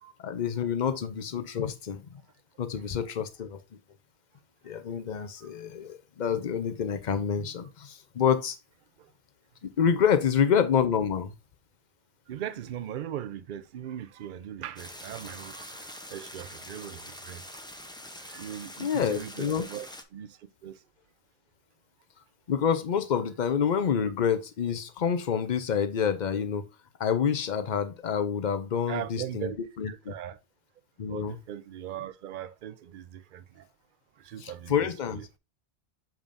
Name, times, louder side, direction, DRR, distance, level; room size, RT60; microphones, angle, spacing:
voice 1, 0.2-2.0 2.6-3.6 4.6-8.6 9.6-11.3 18.8-19.6 22.5-26.6 27.0-29.5 29.8-30.1 31.0-31.4 34.4-35.2, left 7 dB, 50° left, 0.8 m, -27 dB
voice 2, 12.3-17.6 18.1-20.8 28.9-29.6 29.9-30.4 31.1-33.7 34.2-35.2, right 10 dB, 60° right, 0.7 m, -39 dB
sound 1, 14.8-20.0, left 1 dB, 5° left, 0.5 m, -44 dB
7.1 x 5.2 x 2.6 m
omnidirectional pair, 1.1 m